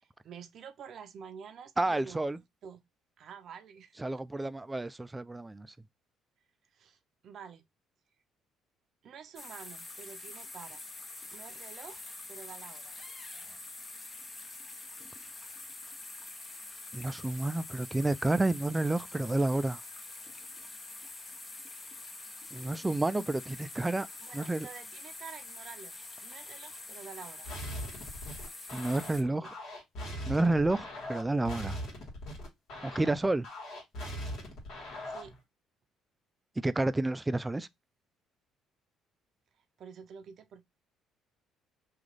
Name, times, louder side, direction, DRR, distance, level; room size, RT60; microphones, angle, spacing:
voice 1, 0.0-2.2 2.6-2.8 3.2-4.0 6.7-7.6 9.0-10.8 11.3-12.0 12.3-12.9 24.2-26.0 26.2-27.5 29.1-29.6 35.0-35.3 39.8-40.6, right 7 dB, 60° right, 0.6 m, -49 dB
voice 2, 1.8-2.4 4.0-5.7 16.9-19.8 22.5-24.1 24.3-24.7 28.7-29.5 30.3-31.8 32.8-33.5 36.6-37.7, right 2 dB, 15° right, 0.3 m, -30 dB
sound 1, 9.4-29.2, left 2 dB, 30° left, 0.7 m, -46 dB
sound 2, 27.5-35.4, equal, 70° left, 1.6 m, -41 dB
3.1 x 2.4 x 3.8 m
supercardioid pair, 70°, 0 cm